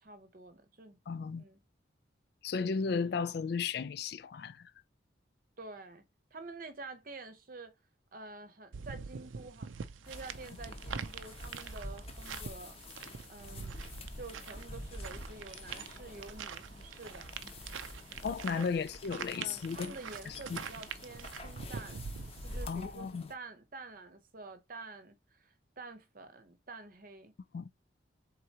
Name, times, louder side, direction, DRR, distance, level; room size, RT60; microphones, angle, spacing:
voice 1, 0.0-1.0 1.4-1.6 5.6-6.0 6.3-7.7 8.1-9.7 10.1-12.8 13.3-13.8 14.1-17.4 18.5-18.7 19.3-22.0 22.4-27.3, right 3 dB, 45° right, 0.8 m, -48 dB
voice 2, 1.1-1.4 2.4-4.7 18.2-19.9 20.3-20.6 22.7-23.3 27.5-27.7, left 5 dB, 55° left, 0.3 m, -35 dB
sound 1, 8.7-22.7, right 6 dB, 90° right, 0.5 m, -45 dB
sound 2, 10.0-23.3, left 1 dB, 30° left, 0.8 m, -47 dB
4.5 x 3.6 x 2.8 m
head